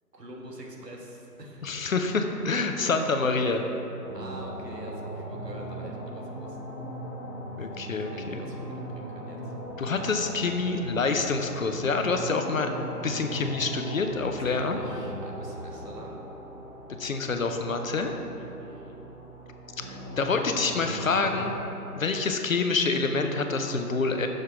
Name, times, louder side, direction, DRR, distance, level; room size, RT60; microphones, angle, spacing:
voice 1, 0.1-1.6 4.1-6.6 8.1-9.5 14.4-16.2 18.4-19.0, right 1 dB, 80° right, -1 dB, 1.5 m, -45 dB
voice 2, 1.6-3.6 7.6-8.4 9.8-12.7 13.0-14.8 17.0-18.1 19.9-21.5 22.0-24.3, left 4 dB, 55° left, 5 dB, 0.6 m, -27 dB
sound 1, 4.0-21.5, right 1 dB, 20° left, 1.1 m, -39 dB
6.5 x 5.6 x 4.7 m, 3.0 s
figure-of-eight pair, 150°, 48 cm